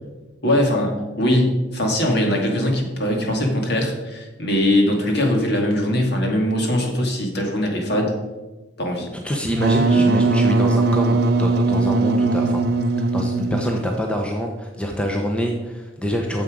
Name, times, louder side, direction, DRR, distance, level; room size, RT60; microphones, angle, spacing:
voice 1, 0.0-8.1 8.8-9.1 9.9-10.1, left 1 dB, 55° left, 1 dB, 2.0 m, -21 dB
voice 2, 9.2-12.6 13.1-16.4, equal, 5° left, 2 dB, 0.7 m, -25 dB
Wind instrument woodwind instrument, 9.5-14.1, right 3 dB, 50° right, 0.6 m, -19 dB
9.7 x 7.3 x 5.0 m, 1.2 s
head